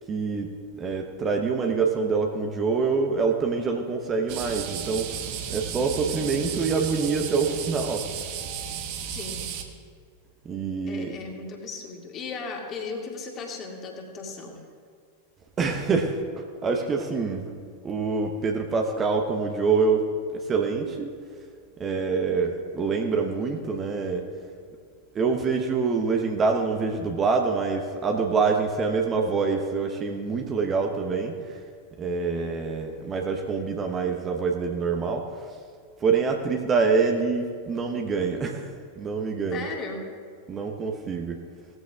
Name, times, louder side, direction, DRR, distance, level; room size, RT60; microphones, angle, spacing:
voice 1, 0.1-0.5 0.8-5.1 5.5-8.1 10.4-11.1 15.6-17.5 17.8-21.1 21.8-24.3 25.1-31.6 32.0-35.3 36.0-38.7 39.0-39.7 40.5-41.4, right 4 dB, 25° right, 3 dB, 1.0 m, -26 dB
sound 1, 4.3-9.6, right 8 dB, 45° right, 1.1 m, -34 dB
voice 2, 9.1-9.5 10.9-14.6 39.5-40.0, left 4 dB, 30° left, 0 dB, 2.2 m, -36 dB
18.5 x 14.5 x 2.4 m, 2.1 s
figure-of-eight pair, 90°, 0 cm